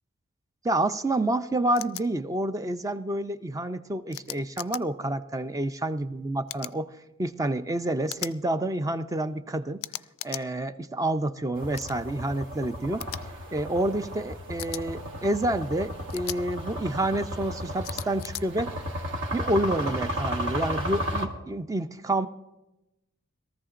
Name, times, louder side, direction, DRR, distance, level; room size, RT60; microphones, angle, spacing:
voice 1, 0.6-6.9 7.2-9.8 10.2-13.1 13.5-18.7 19.3-22.3, right 1 dB, 15° right, 11 dB, 0.4 m, -28 dB
sound 1, 1.8-2.0 4.1-4.8 6.5-6.8 8.1-8.4 9.8-10.4 11.7-12.0 13.0-13.2 14.6-14.8 16.1-16.4 17.8-18.4, left 16 dB, 65° left, 0.3 m, -37 dB
sound 2, 11.5-21.3, equal, 60° right, 1.4 m, -34 dB
21.5 x 14.0 x 2.5 m, 1.0 s
head